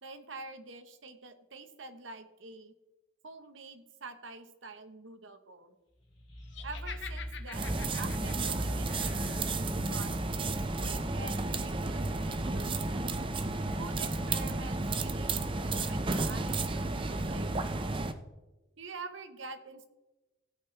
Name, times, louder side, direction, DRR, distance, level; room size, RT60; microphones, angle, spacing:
voice 1, 0.0-2.7 3.2-5.8 6.6-10.1 10.4-12.7 13.7-17.8 18.8-19.9, right 3 dB, 85° right, 8 dB, 1.2 m, -47 dB
sound 1, 6.0-9.7, equal, 30° left, 3.5 m, -40 dB
Laughter, 6.5-9.5, left 7 dB, 70° left, 1.2 m, -46 dB
sound 2, 7.5-18.1, right 2 dB, 25° right, 0.6 m, -32 dB
16.5 x 8.6 x 3.3 m, 1.1 s
head